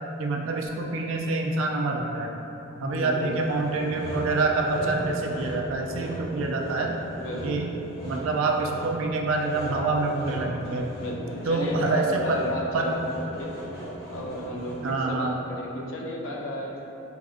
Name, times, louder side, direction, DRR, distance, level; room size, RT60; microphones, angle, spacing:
voice 1, 0.2-2.3 2.8-6.9 7.4-7.7 8.1-10.9 11.5-12.4 12.7-12.9 14.8-15.4, right 3 dB, 70° right, 1 dB, 0.4 m, -26 dB
voice 2, 2.8-3.5 7.2-7.7 11.0-13.5 14.1-16.8, left 1 dB, 70° left, -1 dB, 0.5 m, -33 dB
Sawing, 3.1-15.1, right 1 dB, 45° left, 1.2 m, -37 dB
4.6 x 2.5 x 2.4 m, 2.9 s
head